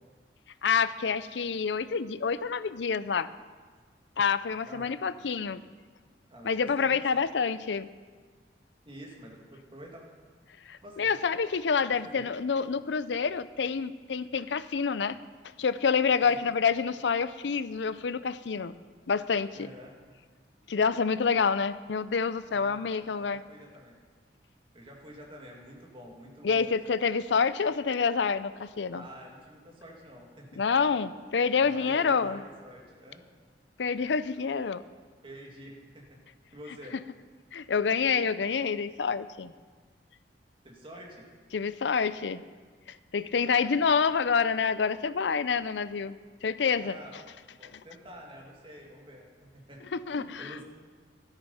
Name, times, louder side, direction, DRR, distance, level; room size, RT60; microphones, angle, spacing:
voice 1, 0.6-3.3 4.2-5.6 6.4-7.9 10.7-15.2 15.6-18.7 19.1-19.7 20.7-23.4 26.4-29.0 30.6-32.4 33.8-34.8 37.5-39.5 41.5-42.4 43.1-46.2 46.4-47.0 47.7-47.8 49.9-50.5, left 5 dB, 85° left, 15 dB, 0.5 m, -27 dB
voice 2, 6.3-7.0 8.8-10.0 10.8-11.2 11.9-12.3 16.2-16.4 19.5-20.0 22.5-24.0 24.7-26.7 28.9-30.6 31.6-33.2 35.2-36.2 36.5-36.9 40.6-41.3 43.4-43.7 46.8-47.1 47.6-49.8 50.1-50.6, equal, 30° right, -1 dB, 2.4 m, -48 dB
13.5 x 11.5 x 5.6 m, 1.5 s
head